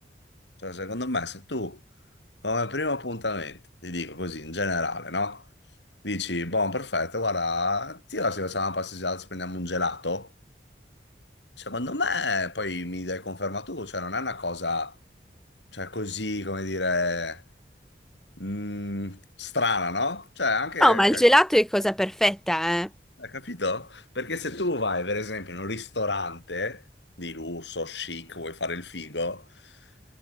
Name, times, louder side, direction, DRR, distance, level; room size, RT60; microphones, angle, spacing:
voice 1, 0.6-1.8 2.4-5.4 6.0-10.3 11.6-14.9 15.7-17.4 18.4-21.2 23.2-26.8 27.2-29.7, left 2 dB, 90° left, 7.9 m, -30 dB
voice 2, 20.8-22.9, equal, ahead, 0.7 m, -20 dB
head